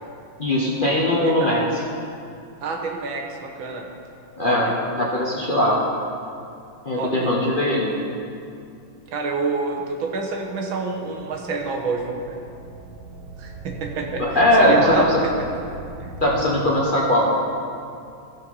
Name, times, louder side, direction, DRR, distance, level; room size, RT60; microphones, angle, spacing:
voice 1, 0.4-1.6 4.4-4.7 4.9-5.8 6.8-7.9 14.2-15.2 16.2-17.3, left 1 dB, 30° left, -4 dB, 1.1 m, -19 dB
voice 2, 2.6-3.9 4.4-4.7 7.0-7.3 9.1-12.4 13.4-15.3 16.0-16.1, right 4 dB, 85° right, 2 dB, 1.9 m, -28 dB
sound 1, 10.9-16.3, right 2 dB, 65° right, 1.5 m, -40 dB
14.5 x 5.5 x 5.5 m, 2.5 s
omnidirectional pair, 2.1 m